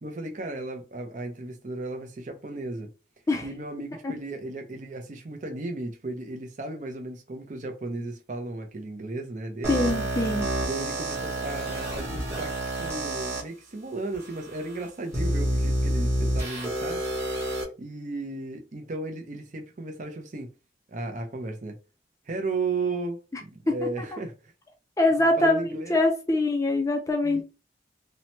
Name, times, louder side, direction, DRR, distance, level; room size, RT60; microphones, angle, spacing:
voice 1, 0.0-2.9 3.4-9.8 10.7-17.0 17.8-20.5 20.9-21.8 22.3-24.5 25.1-26.0 27.2-27.4, right 2 dB, 45° right, 0.5 m, -35 dB
sound 1, 9.6-13.4 14.1-14.2 15.1-17.6, right 1 dB, 15° right, 1.0 m, -28 dB
voice 2, 9.7-10.5 23.7-24.2 25.0-27.4, left 2 dB, 15° left, 0.4 m, -24 dB
2.8 x 2.1 x 2.8 m
head